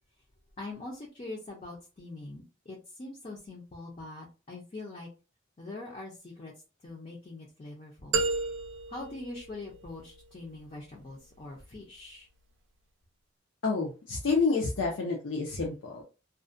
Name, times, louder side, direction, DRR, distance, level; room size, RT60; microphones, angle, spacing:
voice 1, 0.6-5.1 5.6-6.5 6.8-8.2 8.9-12.3, left 2 dB, 30° left, -2 dB, 0.5 m, -43 dB
sound 1, 8.1-10.2, right 3 dB, 75° right, 0.4 m, -32 dB
voice 2, 13.6-16.0, left 4 dB, 85° left, -1 dB, 0.5 m, -29 dB
2.4 x 2.1 x 2.5 m, 0.32 s
head